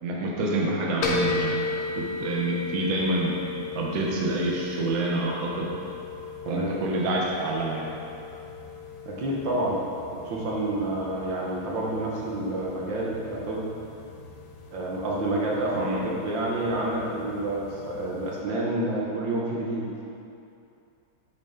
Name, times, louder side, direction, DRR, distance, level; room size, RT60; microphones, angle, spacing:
voice 1, 0.0-1.6 1.9-3.3 3.7-5.7 6.5-7.9 15.8-16.0, right 2 dB, 50° right, -3 dB, 1.3 m, -27 dB
sound 1, 1.0-18.4, left 4 dB, 75° left, 1.6 m, -36 dB
voice 2, 9.1-9.8 10.1-13.7 14.7-19.9, right 1 dB, 70° right, -4 dB, 1.8 m, -29 dB
8.6 x 6.5 x 3.8 m, 2.7 s
omnidirectional pair, 2.1 m